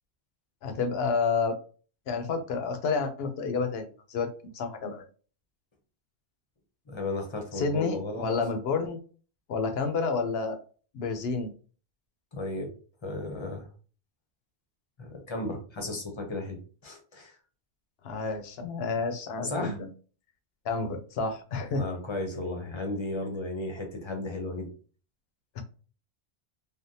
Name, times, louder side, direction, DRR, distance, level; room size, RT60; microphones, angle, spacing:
voice 1, 0.6-1.6 2.1-5.0 7.5-9.0 9.5-10.6 10.9-11.5 18.0-19.9 20.6-21.8 25.6-25.7, left 4 dB, 70° left, 7 dB, 0.8 m, -30 dB
voice 2, 6.9-8.3 12.3-12.7 13.0-13.7 15.0-16.6 16.8-17.4 19.4-19.8 21.7-24.7, left 2 dB, 30° left, 2 dB, 0.7 m, -34 dB
3.4 x 2.1 x 2.6 m, 0.39 s
omnidirectional pair, 1.1 m